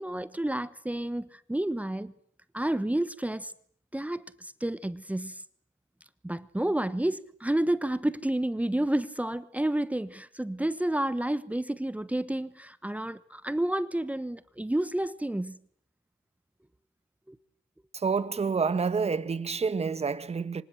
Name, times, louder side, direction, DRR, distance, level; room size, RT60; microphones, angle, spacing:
voice 1, 0.0-2.1 2.5-3.5 3.9-5.4 6.2-15.6 17.3-17.4, right 1 dB, 5° right, 1.1 m, -30 dB
voice 2, 17.9-20.6, right 5 dB, 30° right, 1.7 m, -28 dB
25.5 x 20.0 x 9.1 m
cardioid pair, 90°, 20 cm